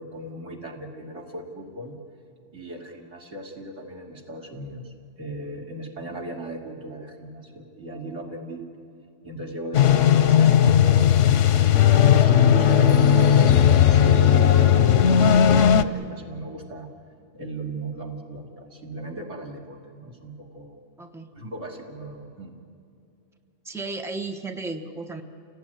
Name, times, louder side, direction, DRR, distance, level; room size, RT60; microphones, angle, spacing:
voice 1, 0.0-2.0 2.5-8.7 9.2-16.9 17.3-20.8 21.3-22.6, right 1 dB, 90° right, -1 dB, 3.1 m, -38 dB
sound 1, 9.7-15.8, left 9 dB, 85° left, 1.1 m, -16 dB
voice 2, 21.0-21.3 23.6-25.2, right 3 dB, ahead, 5 dB, 1.1 m, -34 dB
29.5 x 18.0 x 9.3 m, 2.5 s
omnidirectional pair, 1.2 m